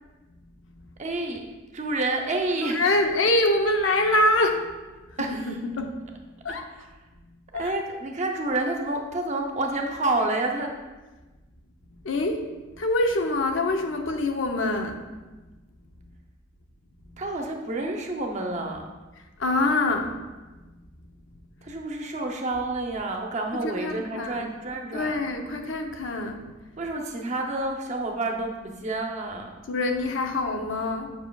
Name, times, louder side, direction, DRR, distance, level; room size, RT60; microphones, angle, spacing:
voice 1, 1.0-1.5 1.7-2.9 5.2-5.6 6.5-6.9 7.6-10.7 17.2-18.9 21.6-25.2 26.8-29.5, right 2 dB, 35° right, 2 dB, 0.7 m, -29 dB
voice 2, 2.6-4.7 5.1-6.0 6.4-6.7 7.5-7.7 12.0-12.5 12.8-15.0 19.4-20.2 23.6-24.5 24.9-26.4 29.7-31.1, left 2 dB, 80° left, 4 dB, 0.7 m, -25 dB
7.2 x 6.0 x 2.3 m, 1.2 s
head